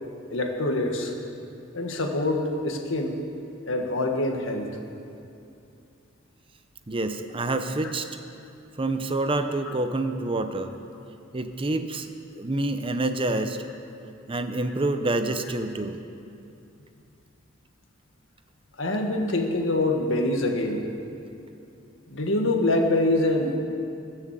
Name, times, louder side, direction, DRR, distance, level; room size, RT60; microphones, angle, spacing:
voice 1, 0.3-1.1 1.7-3.2 3.7-4.7 9.7-9.8 18.8-20.8 22.1-23.6, left 2 dB, 70° left, 3 dB, 1.7 m, -25 dB
voice 2, 6.9-8.1 8.8-10.7 11.3-12.1 12.4-13.6 14.3-16.0, right 2 dB, 25° right, 8 dB, 0.7 m, -27 dB
20.5 x 7.4 x 7.5 m, 2.7 s
head